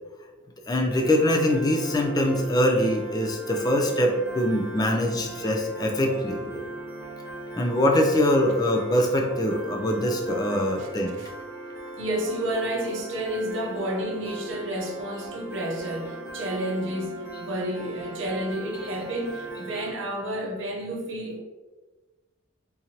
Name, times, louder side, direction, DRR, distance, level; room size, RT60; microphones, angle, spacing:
voice 1, 0.7-6.6 7.6-11.2, left 1 dB, 20° left, 0.4 m, -23 dB
Piano, 0.9-19.9, right 2 dB, 10° right, 0.9 m, -39 dB
voice 2, 12.0-21.4, right 1 dB, 60° right, 0.7 m, -30 dB
3.8 x 2.9 x 2.8 m
head